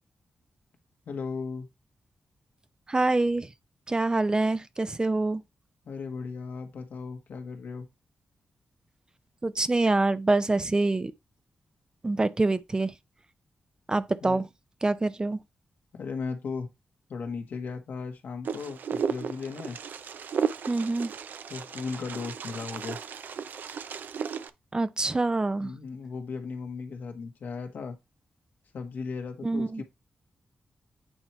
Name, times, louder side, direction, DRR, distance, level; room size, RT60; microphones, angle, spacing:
voice 1, 1.0-1.7 5.8-7.9 14.2-14.4 15.9-16.7 17.1-19.8 21.5-23.0 25.6-28.0 28.7-29.8, left 5 dB, 80° left, 1.5 m, -36 dB
voice 2, 2.9-3.5 3.9-5.4 9.4-11.1 12.0-12.9 13.9-14.4 14.8-15.4 20.7-21.1 24.7-25.7 29.4-29.8, right 2 dB, 25° right, 0.5 m, -25 dB
Wind, 18.4-24.5, right 6 dB, 75° right, 0.5 m, -34 dB
8.9 x 3.0 x 4.5 m
cardioid pair, 75°, 3 cm